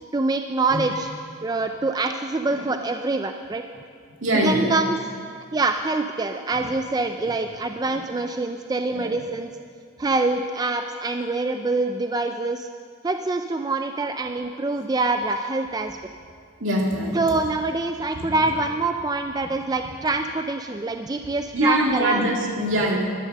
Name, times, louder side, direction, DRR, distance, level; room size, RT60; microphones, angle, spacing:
voice 1, 0.1-1.1 1.4-3.6 4.4-5.0 5.5-9.5 10.0-12.7 13.0-16.0 17.1-22.2, right 3 dB, 20° right, 6 dB, 0.3 m, -25 dB
voice 2, 4.2-4.8 7.3-7.4 7.9-8.0 8.9-9.1 15.3-15.4 16.6-17.3 18.2-18.5 21.5-23.2, right 1 dB, 65° right, -1 dB, 2.3 m, -24 dB
12.0 x 10.0 x 6.6 m, 2.1 s
head